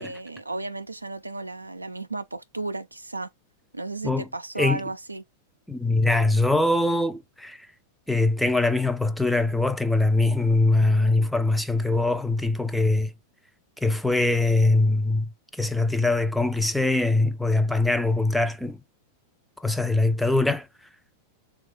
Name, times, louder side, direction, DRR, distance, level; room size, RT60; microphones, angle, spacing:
voice 1, 0.0-3.3 3.7-5.2, right 3 dB, 90° right, 0.3 m, -34 dB
voice 2, 5.7-7.6 8.1-13.1 13.8-15.3 15.6-18.8 19.6-20.7, left 2 dB, ahead, 0.4 m, -22 dB
3.0 x 2.4 x 3.6 m
figure-of-eight pair, 95°, 0 cm